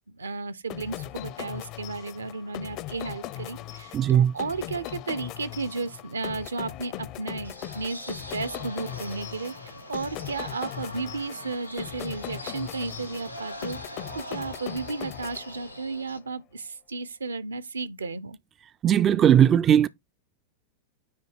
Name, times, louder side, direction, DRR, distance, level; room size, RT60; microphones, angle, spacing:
voice 1, 0.1-18.4, right 3 dB, 75° right, 0.7 m, -34 dB
sound 1, 0.7-16.0, left 13 dB, 40° left, 0.6 m, -39 dB
voice 2, 3.9-4.3 18.8-19.9, right 9 dB, 25° right, 0.4 m, -18 dB
sound 2, 7.4-16.2, equal, 90° left, 1.0 m, -42 dB
9.7 x 3.3 x 4.5 m
figure-of-eight pair, 90°, 0 cm